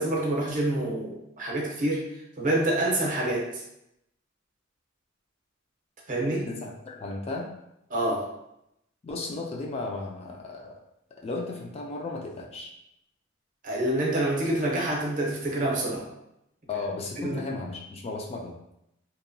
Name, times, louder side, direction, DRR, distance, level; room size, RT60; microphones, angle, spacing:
voice 1, 0.0-2.0 2.4-3.6 6.1-6.5 7.9-8.3 13.6-16.1 17.2-17.4, right 1 dB, 40° right, -2 dB, 0.7 m, -27 dB
voice 2, 6.5-7.5 9.0-10.8 11.2-12.7 16.7-18.7, left 3 dB, 30° left, 0 dB, 0.3 m, -35 dB
2.8 x 2.2 x 2.6 m, 0.82 s
head